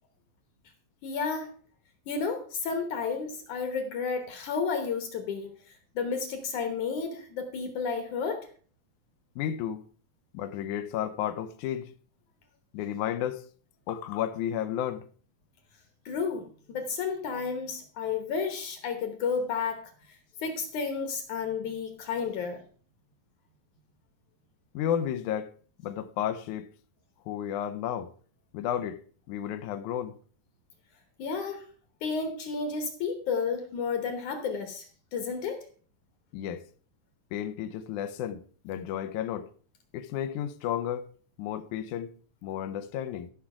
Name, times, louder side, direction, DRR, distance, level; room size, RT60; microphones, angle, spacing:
voice 1, 1.0-1.5 2.1-5.5 6.0-8.5 16.1-19.9 20.4-22.6 31.2-31.6 32.0-35.6, left 5 dB, 65° left, 2.2 m, -32 dB
voice 2, 9.4-9.8 10.3-11.9 12.7-13.5 13.9-15.1 24.7-25.5 25.8-26.7 27.3-28.1 28.5-30.2 36.3-36.6 37.3-39.5 39.9-41.1 41.4-42.2 42.4-43.3, left 10 dB, 85° left, 1.7 m, -32 dB
13.5 x 5.9 x 4.9 m
omnidirectional pair, 4.3 m